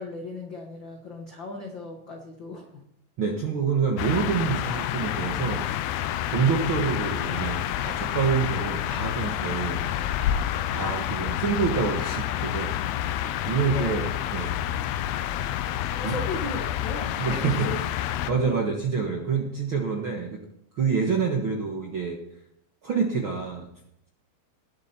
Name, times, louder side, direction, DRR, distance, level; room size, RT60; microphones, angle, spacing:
voice 1, 0.0-2.8 13.7-14.0 15.8-17.8 18.3-18.6, left 2 dB, 65° left, 2 dB, 1.1 m, -36 dB
voice 2, 3.2-5.7 6.3-10.2 10.7-13.0 13.4-14.6 16.0-16.3 17.2-17.7 18.3-20.4 20.7-22.2 22.8-23.7, right 5 dB, 60° right, 0 dB, 1.4 m, -27 dB
sound 1, 4.0-18.3, left 11 dB, 90° left, 2.6 m, -29 dB
19.5 x 7.7 x 4.4 m, 0.76 s
omnidirectional pair, 4.3 m